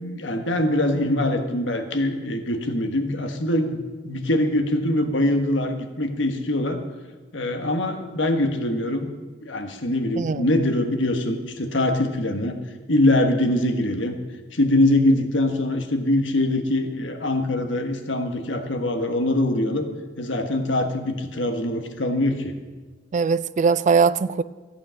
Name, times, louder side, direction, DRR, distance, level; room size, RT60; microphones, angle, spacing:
voice 1, 0.0-3.8 4.0-6.8 7.3-9.1 9.4-12.6 12.9-14.2 14.5-19.9 20.2-22.5, left 1 dB, 75° left, 6 dB, 1.3 m, -23 dB
voice 2, 10.2-10.5 23.1-24.4, right 5 dB, 40° right, 16 dB, 0.3 m, -20 dB
14.0 x 8.5 x 6.3 m, 1.4 s
head